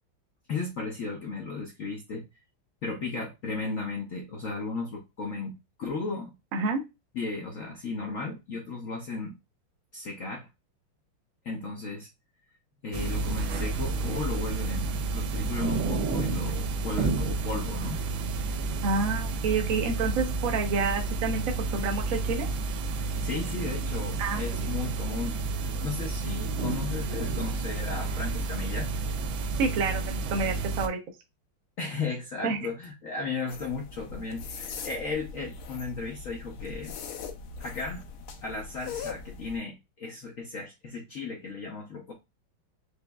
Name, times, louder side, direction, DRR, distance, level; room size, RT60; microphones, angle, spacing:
voice 1, 0.5-2.4 2.8-6.3 7.1-9.3 9.9-10.5 11.4-12.1 12.8-18.0 23.0-28.9 31.8-36.9 37.6-38.1 38.4-42.1, left 4 dB, 70° left, 0.7 m, -35 dB
voice 2, 6.5-6.8 18.8-21.4 21.7-22.5 24.2-24.4 29.6-31.0 32.4-32.6, right 4 dB, 55° right, 1.0 m, -28 dB
sound 1, 12.9-30.9, right 4 dB, 75° right, 1.3 m, -30 dB
sound 2, 33.5-39.6, left 5 dB, 85° left, 1.6 m, -41 dB
5.1 x 3.0 x 2.2 m
omnidirectional pair, 2.3 m